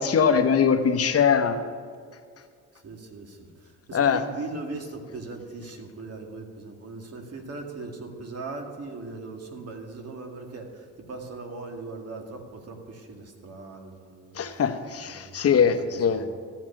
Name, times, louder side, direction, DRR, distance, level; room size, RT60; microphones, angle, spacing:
voice 1, 0.0-1.6 3.9-4.2 14.3-16.2, left 7 dB, 50° left, 7 dB, 1.0 m, -22 dB
voice 2, 2.7-14.6 15.0-15.4 15.6-16.3, right 3 dB, 55° right, 3 dB, 2.2 m, -39 dB
14.5 x 5.9 x 8.9 m, 2.1 s
cardioid pair, 90°, 30 cm